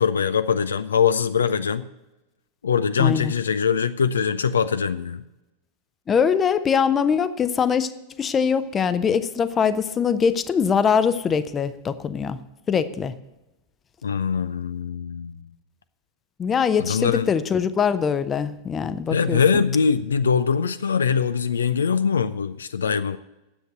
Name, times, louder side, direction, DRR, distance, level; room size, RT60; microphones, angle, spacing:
voice 1, 0.0-1.8 2.6-5.2 14.0-15.5 16.8-17.3 19.1-23.2, left 6 dB, 70° left, 0.4 m, -22 dB
voice 2, 3.0-3.3 6.1-7.9 8.2-12.4 12.7-13.1 16.4-19.6, left 6 dB, 20° left, 0.7 m, -22 dB
9.9 x 7.9 x 7.7 m
figure-of-eight pair, 90°, 0 cm